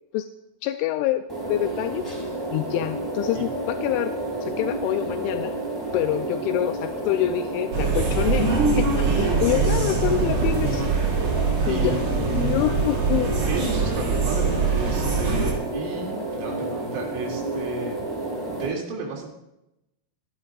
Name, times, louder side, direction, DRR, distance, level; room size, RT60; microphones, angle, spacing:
voice 1, 0.6-2.2 2.5-4.1 4.4-5.6 5.9-8.5 8.8-10.8 11.7-12.0 12.3-13.3, left 13 dB, 85° left, 8 dB, 2.7 m, -26 dB
sound 1, 1.3-18.7, right 1 dB, 5° left, 4.0 m, -31 dB
sound 2, 7.7-15.5, right 4 dB, 45° right, 3.0 m, -23 dB
voice 2, 11.7-12.6 13.5-18.0 18.3-19.3, right 3 dB, 70° right, -1 dB, 4.9 m, -33 dB
25.0 x 11.0 x 2.4 m, 0.87 s
omnidirectional pair, 5.9 m